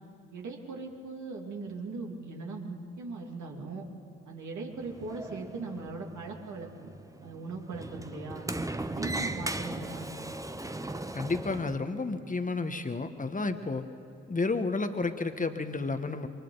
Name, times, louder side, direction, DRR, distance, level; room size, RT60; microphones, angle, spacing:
voice 1, 0.3-3.9 4.2-6.9 7.2-8.5 8.9-10.1, right 3 dB, 60° right, 0 dB, 3.2 m, -39 dB
Sliding door, 4.7-11.8, right 2 dB, 10° right, 1.0 m, -38 dB
voice 2, 11.1-13.8 14.3-16.3, left 3 dB, 25° left, 8 dB, 1.6 m, -31 dB
27.5 x 23.0 x 4.1 m, 2.6 s
hypercardioid pair, 40°, 32 cm